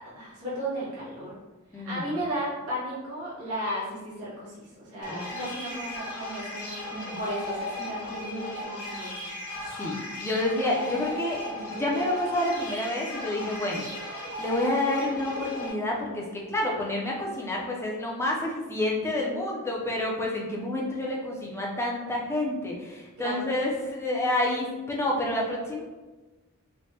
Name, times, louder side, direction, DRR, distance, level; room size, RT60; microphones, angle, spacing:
voice 1, 0.0-1.3 1.8-6.9 7.1-9.2 23.2-23.5, right 1 dB, 70° right, -8 dB, 1.1 m, -34 dB
voice 2, 1.7-2.0 5.1-5.5 6.9-7.2 9.8-14.1 14.4-25.8, left 1 dB, 10° left, -2 dB, 0.4 m, -29 dB
sound 1, 5.0-15.7, left 1 dB, 85° left, 0.7 m, -36 dB
3.2 x 2.1 x 2.8 m, 1.2 s
head